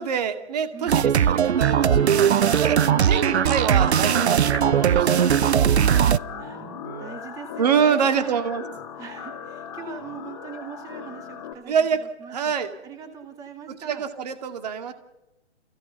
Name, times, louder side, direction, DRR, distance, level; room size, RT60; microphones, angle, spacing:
voice 1, 0.0-7.1 7.6-8.6 11.7-12.0 12.3-12.7 13.7-14.9, right 7 dB, 35° right, 8 dB, 2.2 m, -26 dB
sound 1, 0.9-6.2, right 9 dB, 70° right, 0.7 m, -19 dB
sound 2, 1.5-11.5, left 7 dB, 25° left, 2.6 m, -38 dB
sound 3, 3.7-5.8, left 7 dB, 65° left, 1.7 m, -37 dB
voice 2, 6.2-8.4 8.9-12.4 12.8-14.1, right 6 dB, 10° right, 5 dB, 2.0 m, -41 dB
28.5 x 16.5 x 7.0 m, 0.94 s
hypercardioid pair, 165°, 34 cm